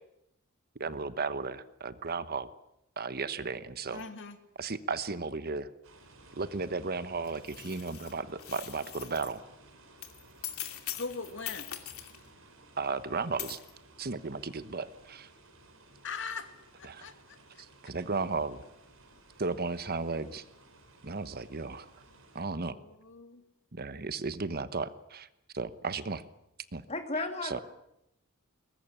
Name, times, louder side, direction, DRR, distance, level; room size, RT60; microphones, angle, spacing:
voice 1, 0.8-2.5 3.0-4.0 4.6-5.7 6.3-9.4 12.8-13.6 14.0-15.3 16.8-17.1 17.8-18.6 19.4-20.4 21.0-21.9 22.3-22.8 23.7-25.3 25.5-26.2 26.7-26.8 27.1-27.6, right 4 dB, 45° right, 13 dB, 1.1 m, -35 dB
voice 2, 3.9-4.4 10.9-11.7 16.0-16.5 16.8-17.6 22.6-23.4, left 4 dB, 60° left, 8 dB, 2.6 m, -41 dB
sound 1, 5.8-22.4, right 2 dB, 70° right, 5.3 m, -57 dB
sound 2, 7.2-9.4 10.0-12.3 13.4-13.7, left 12 dB, 85° left, 2.6 m, -42 dB
voice 3, 26.9-27.6, left 3 dB, 30° left, 6 dB, 3.0 m, -34 dB
22.0 x 20.0 x 10.0 m, 0.82 s
head